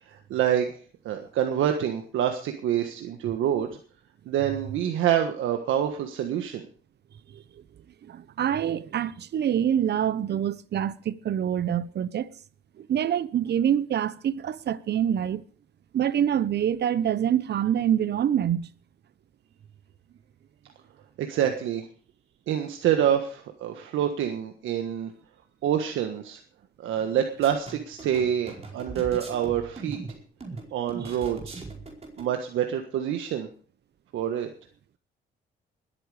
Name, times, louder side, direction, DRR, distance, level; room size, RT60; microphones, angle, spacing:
voice 1, 0.0-0.7 1.0-3.7 4.3-6.6 21.2-21.8 22.5-25.1 25.6-26.4 26.8-30.0 30.7-31.6 32.2-33.5 34.1-34.5, right 10 dB, 80° right, 1.5 m, -26 dB
voice 2, 8.0-12.3 12.8-15.4 15.9-18.7 31.0-31.1, right 9 dB, 60° right, 0.9 m, -26 dB
sound 1, 27.4-32.3, right 3 dB, 30° right, 4.8 m, -40 dB
20.5 x 9.1 x 5.0 m
cardioid pair, 90°, 20 cm